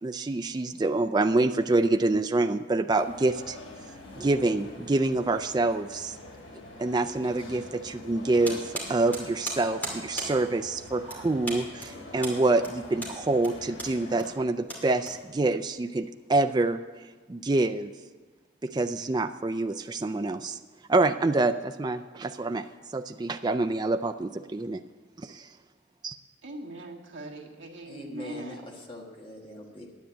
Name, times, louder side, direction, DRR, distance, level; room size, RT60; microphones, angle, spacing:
voice 1, 0.0-3.6 4.2-6.2 6.8-16.8 17.3-17.9 18.6-20.6 20.9-22.7 22.9-24.8 25.2-25.5 26.0-26.1, right 2 dB, 20° right, 8 dB, 0.3 m, -26 dB
sound 1, 2.9-14.3, left 2 dB, 85° left, 2.5 m, -46 dB
sound 2, 8.4-15.6, right 1 dB, 10° left, 2.6 m, -38 dB
voice 2, 26.4-28.7, right 1 dB, 75° right, -1 dB, 1.7 m, -41 dB
voice 3, 27.9-29.9, left 1 dB, 30° left, 0 dB, 1.5 m, -42 dB
10.0 x 8.8 x 8.2 m, 1.3 s
head